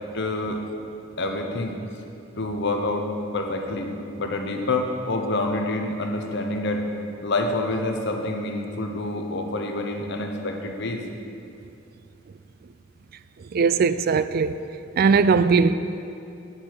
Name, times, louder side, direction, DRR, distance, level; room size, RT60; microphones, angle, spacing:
voice 1, 0.1-0.6 1.2-1.8 2.4-3.1 3.3-6.8 7.2-11.0, left 2 dB, 60° left, 4 dB, 0.9 m, -27 dB
voice 2, 13.4-14.6 15.0-15.7, right 5 dB, 45° right, 13 dB, 0.3 m, -19 dB
9.7 x 8.7 x 4.7 m, 2.6 s
head